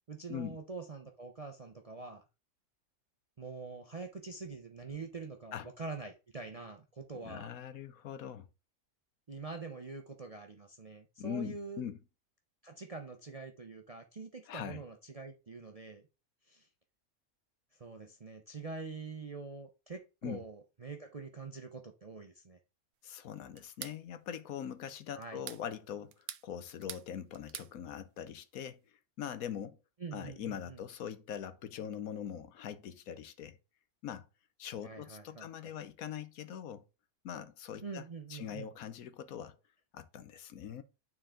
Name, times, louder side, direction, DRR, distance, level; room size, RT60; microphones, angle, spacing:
voice 1, 0.1-2.2 3.4-7.5 9.3-11.8 12.6-16.1 16.5-16.7 17.7-22.6 25.1-25.4 30.0-30.8 34.8-35.7 37.8-38.7, right 4 dB, 40° right, 0.5 m, -45 dB
voice 2, 7.2-8.5 11.2-12.0 14.5-14.8 20.2-20.4 23.0-26.1 26.4-28.8 29.2-29.8 30.1-33.6 34.0-34.3 34.6-36.8 37.2-38.0 38.3-39.6 39.9-40.8, left 9 dB, 70° left, 1.2 m, -42 dB
sound 1, 23.6-24.0 25.2-25.6 26.1-27.1 27.3-27.7, right 12 dB, 85° right, 1.1 m, -45 dB
9.1 x 4.6 x 3.7 m
omnidirectional pair, 1.6 m